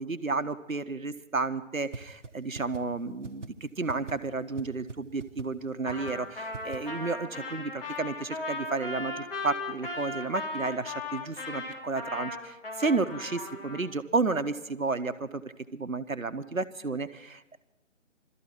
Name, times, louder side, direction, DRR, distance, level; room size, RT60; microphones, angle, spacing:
voice 1, 0.0-15.4 15.7-17.6, right 3 dB, 85° right, 11 dB, 1.2 m, -32 dB
sound 1, 1.9-2.3 2.6-2.8 3.2-3.5 3.9-4.1 4.6-4.7 4.9-5.0 5.2-5.5 5.9-6.1 6.5-6.8, right 4 dB, 60° right, 1.2 m, -39 dB
Trumpet, 5.8-13.9, left 2 dB, 45° left, 3.5 m, -37 dB
23.0 x 13.5 x 4.5 m, 0.98 s
figure-of-eight pair, 150°, 40 cm